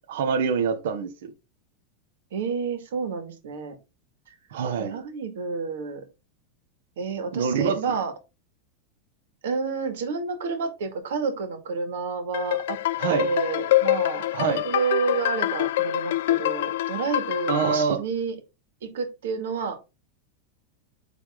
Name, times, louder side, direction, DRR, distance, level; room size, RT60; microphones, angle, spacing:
voice 1, 0.1-1.3 4.5-5.0 7.3-7.9 13.0-13.3 14.3-14.7 17.5-18.0, right 6 dB, 70° right, 0.9 m, -25 dB
voice 2, 2.3-3.7 4.8-6.0 7.0-8.1 9.4-12.8 13.1-14.3 14.6-18.3 18.8-19.8, right 5 dB, 90° right, 2.2 m, -29 dB
sound 1, 12.3-17.8, left 15 dB, 70° left, 0.4 m, -25 dB
9.3 x 3.4 x 3.7 m
supercardioid pair, 165°, 0 cm